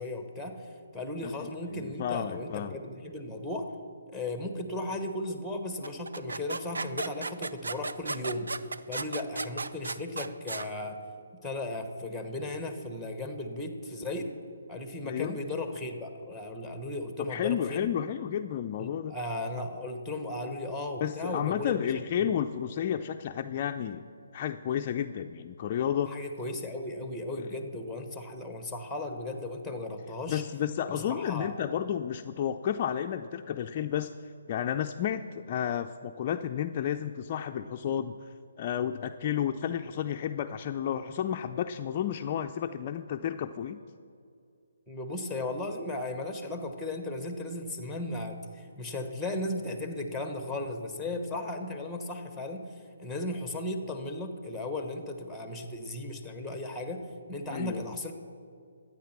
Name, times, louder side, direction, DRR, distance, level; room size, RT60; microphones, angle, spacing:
voice 1, 0.0-3.7 4.1-8.5 8.9-11.0 11.4-14.3 14.7-17.9 18.8-22.3 26.1-30.4 30.9-31.6 44.9-52.6 53.0-57.0 57.3-58.1, left 2 dB, ahead, 6 dB, 1.1 m, -36 dB
voice 2, 1.2-2.8 15.0-15.4 17.3-19.2 21.0-24.0 24.3-26.1 30.3-34.1 34.5-38.3 38.6-43.8 57.5-57.9, left 9 dB, 35° left, 6 dB, 0.4 m, -32 dB
sound 1, 5.8-10.7, right 3 dB, 85° right, 0.5 m, -35 dB
13.0 x 8.7 x 6.0 m, 2.4 s
hypercardioid pair, 160°, 0 cm